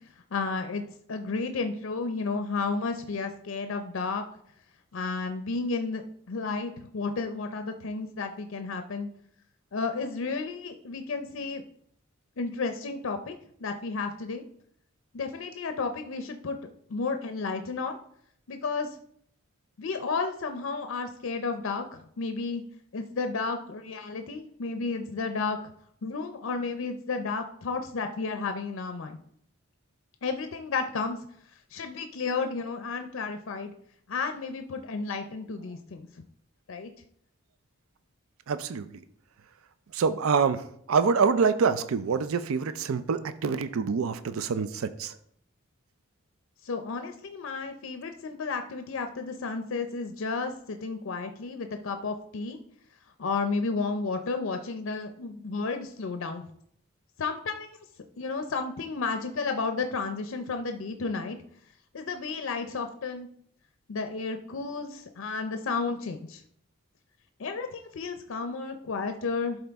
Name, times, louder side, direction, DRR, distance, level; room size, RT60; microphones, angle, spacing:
voice 1, 0.3-0.8 1.1-4.2 4.9-9.1 9.7-11.6 12.4-13.3 13.6-14.5 15.1-16.6 16.9-18.0 18.5-18.9 19.8-22.6 22.9-25.7 26.0-29.2 30.2-31.2 31.7-33.7 34.1-36.1 36.7-36.9 46.6-52.6 53.2-56.4 57.2-57.8 58.2-61.4 61.9-63.3 63.9-66.4 67.4-69.6, left 4 dB, 75° left, 7 dB, 0.5 m, -32 dB
voice 2, 38.5-39.0 39.9-45.1, right 5 dB, 85° right, 12 dB, 0.4 m, -26 dB
11.5 x 4.0 x 3.5 m, 0.67 s
head